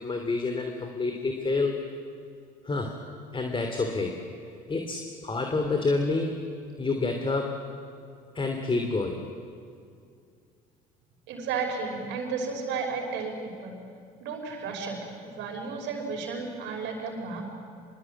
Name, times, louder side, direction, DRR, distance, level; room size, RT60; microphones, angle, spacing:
voice 1, 0.0-1.8 2.6-3.0 3.3-4.2 4.7-6.4 6.8-7.6 8.3-9.3, left 3 dB, 25° left, 4 dB, 3.1 m, -28 dB
voice 2, 11.3-13.8 14.2-17.5, right 4 dB, 70° right, 3 dB, 5.5 m, -33 dB
24.5 x 22.0 x 9.1 m, 2.3 s
hypercardioid pair, 70°, 20 cm